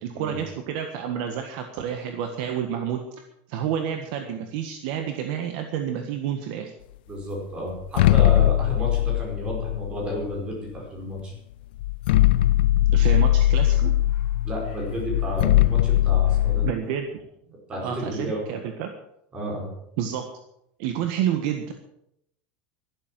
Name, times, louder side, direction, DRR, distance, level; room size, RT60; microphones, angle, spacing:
voice 1, 0.0-3.0 3.5-6.7 12.9-14.0 16.6-17.2 17.8-18.9 20.0-20.2 20.8-21.7, right 9 dB, 50° right, 5 dB, 1.5 m, -29 dB
voice 2, 7.1-11.3 14.4-16.6 17.7-18.4 19.3-19.7, equal, 20° right, -1 dB, 5.1 m, -32 dB
sound 1, 7.8-10.6 11.3-11.4 11.8-16.7, left 14 dB, 80° left, 0.5 m, -20 dB
12.0 x 12.0 x 7.6 m, 0.78 s
supercardioid pair, 175°, 5 cm